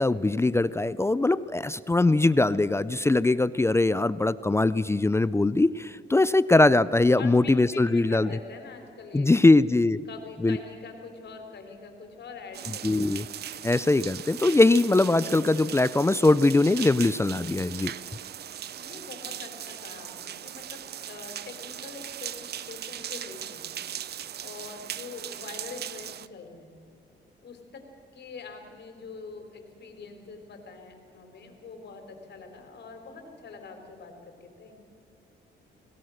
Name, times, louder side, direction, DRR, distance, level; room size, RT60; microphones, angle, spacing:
voice 1, 0.0-8.3 9.1-10.0 10.4-10.6 12.8-13.3 13.6-17.9, left 2 dB, 15° left, 17 dB, 0.5 m, -21 dB
voice 2, 7.1-9.3 10.1-12.8 18.8-23.6 24.4-26.7 27.4-27.8 28.1-34.8, left 4 dB, 60° left, 4 dB, 4.2 m, -44 dB
sound 1, 12.5-26.3, right 10 dB, 55° right, 0.7 m, -39 dB
27.5 x 18.0 x 6.6 m, 2.4 s
cardioid pair, 90°, 20 cm